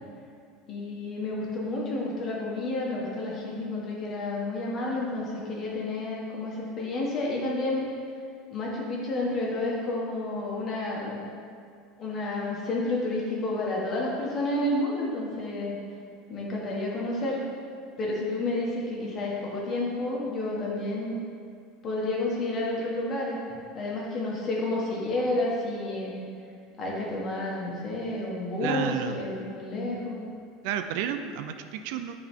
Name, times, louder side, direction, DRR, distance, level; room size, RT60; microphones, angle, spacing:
voice 1, 0.7-7.8 8.5-11.2 12.0-15.7 16.3-17.4 18.0-21.2 21.8-23.4 23.7-26.1 26.8-30.2, left 2 dB, 30° left, -4 dB, 1.3 m, -30 dB
voice 2, 28.6-29.2 30.6-32.1, right 9 dB, 60° right, 8 dB, 0.4 m, -31 dB
10.0 x 3.9 x 3.6 m, 2.3 s
cardioid pair, 165°, 0 cm